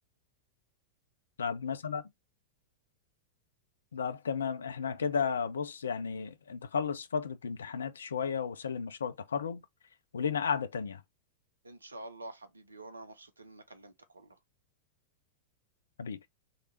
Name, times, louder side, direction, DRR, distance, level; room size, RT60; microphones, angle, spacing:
voice 1, 1.4-2.0 3.9-9.6 10.1-11.0 16.0-16.2, left 6 dB, 70° left, 0.5 m, -33 dB
voice 2, 11.6-14.4, right 2 dB, 80° right, 0.7 m, -48 dB
3.9 x 3.3 x 2.7 m
figure-of-eight pair, 90°, 0 cm